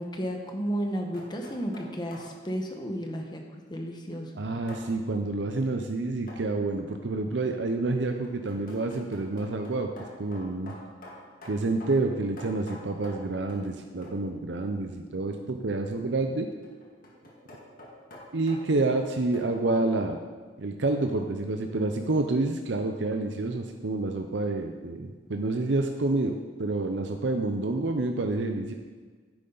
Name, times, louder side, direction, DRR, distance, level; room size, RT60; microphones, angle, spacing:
voice 1, 0.0-3.4 3.7-4.4, equal, 25° left, 2 dB, 1.2 m, -33 dB
sound 1, 0.8-2.4 4.7-4.9 6.3-6.5 7.8-13.7 14.0-14.3 16.4-19.5, left 1 dB, 50° left, 2.0 m, -47 dB
voice 2, 4.4-9.9 10.2-10.7 11.4-16.5 18.3-20.2 20.6-28.7, right 2 dB, 70° right, 4 dB, 0.7 m, -28 dB
10.0 x 9.6 x 4.0 m, 1.5 s
head